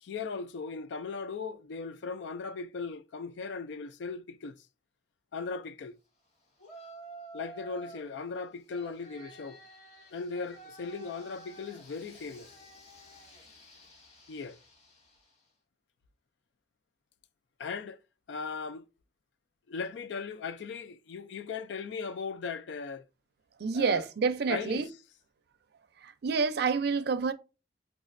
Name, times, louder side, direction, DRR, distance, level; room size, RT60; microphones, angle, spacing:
voice 1, 0.0-4.6 5.3-6.0 7.3-9.6 10.1-12.5 14.3-14.6 17.6-18.0 18.3-18.9 19.7-23.0 23.7-24.0 24.5-24.9, left 5 dB, 85° left, 0.4 m, -38 dB
Yell, 6.6-8.1 8.7-15.4, right 2 dB, 40° left, 1.4 m, -51 dB
voice 2, 23.6-24.9 26.0-27.3, right 5 dB, 65° right, 0.4 m, -28 dB
4.9 x 2.4 x 2.5 m
head